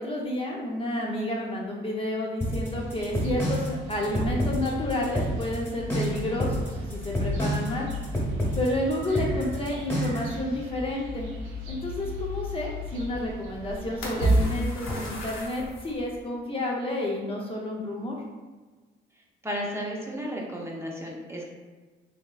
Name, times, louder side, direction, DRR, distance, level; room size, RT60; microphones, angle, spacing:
voice 1, 0.0-7.9 8.5-11.3 11.7-18.2, left 1 dB, 25° left, -2 dB, 0.6 m, -30 dB
sound 1, 2.4-10.3, equal, 10° left, 1.2 m, -28 dB
sound 2, 2.6-14.6, left 3 dB, 85° right, 0.9 m, -40 dB
sound 3, 9.4-16.2, right 1 dB, 90° left, 0.8 m, -32 dB
voice 2, 19.4-21.4, equal, 15° right, -2 dB, 0.7 m, -33 dB
3.4 x 3.0 x 2.3 m, 1.3 s
cardioid pair, 90°, 20 cm